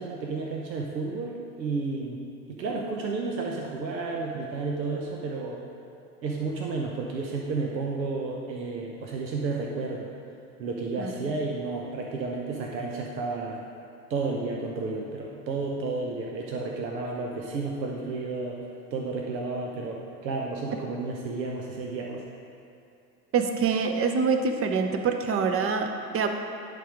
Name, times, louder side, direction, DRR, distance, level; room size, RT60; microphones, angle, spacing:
voice 1, 0.0-2.2 2.5-5.6 6.2-10.1 10.6-13.6 14.1-18.6 18.9-22.2, right 3 dB, 85° right, -1 dB, 0.8 m, -32 dB
voice 2, 23.3-26.3, right 5 dB, 30° right, 5 dB, 0.7 m, -25 dB
10.0 x 3.8 x 4.9 m, 2.7 s
hypercardioid pair, 75°, 49 cm